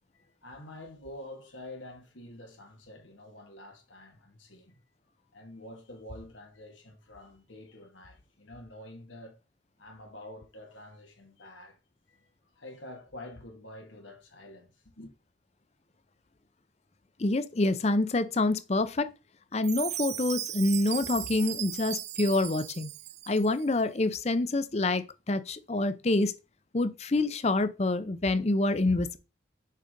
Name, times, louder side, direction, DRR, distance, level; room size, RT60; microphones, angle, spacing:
voice 1, 0.1-4.8 5.1-9.4 9.8-11.8 12.1-15.1, left 1 dB, 90° left, 2.0 m, -48 dB
voice 2, 17.2-19.1 19.5-22.9 23.3-26.3 26.7-29.2, left 2 dB, 35° left, 0.6 m, -27 dB
Chime, 19.6-23.6, right 13 dB, 35° right, 0.3 m, -37 dB
6.6 x 5.0 x 3.8 m
head